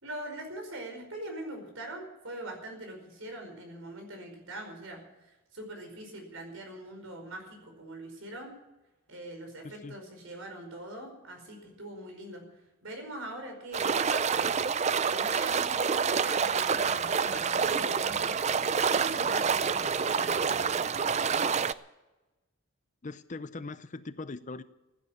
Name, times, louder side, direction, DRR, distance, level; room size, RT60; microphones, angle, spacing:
voice 1, 0.0-8.6 9.1-12.4 12.8-14.5 15.1-18.4 18.8-21.2, right 1 dB, 70° right, 4 dB, 5.0 m, -42 dB
voice 2, 9.6-10.0 23.0-24.6, left 3 dB, 35° left, 13 dB, 0.6 m, -40 dB
sound 1, 13.7-21.7, right 6 dB, 30° right, 0.4 m, -27 dB
15.5 x 9.8 x 8.7 m, 1.0 s
head